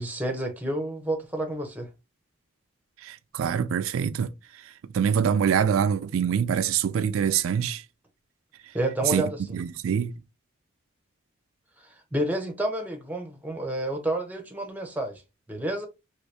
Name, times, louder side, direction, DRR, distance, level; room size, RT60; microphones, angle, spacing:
voice 1, 0.0-1.9 8.7-9.6 11.8-15.2 15.5-15.9, right 1 dB, 10° right, 0.6 m, -30 dB
voice 2, 3.0-4.3 4.9-7.8 9.1-10.1, right 8 dB, 90° right, 0.3 m, -25 dB
3.1 x 2.8 x 3.2 m
head